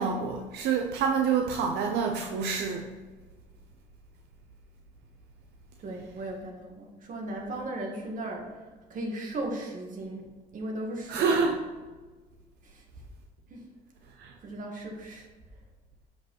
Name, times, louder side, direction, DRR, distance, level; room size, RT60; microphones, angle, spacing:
voice 1, 0.0-2.9 11.1-11.6 14.2-14.3, right 5 dB, 80° right, 3 dB, 0.8 m, -27 dB
voice 2, 5.8-11.3 12.6-12.8 13.5-13.6 14.4-15.3, right 1 dB, 50° right, 1 dB, 1.9 m, -37 dB
6.8 x 5.5 x 4.6 m, 1.3 s
cardioid pair, 110°, 17 cm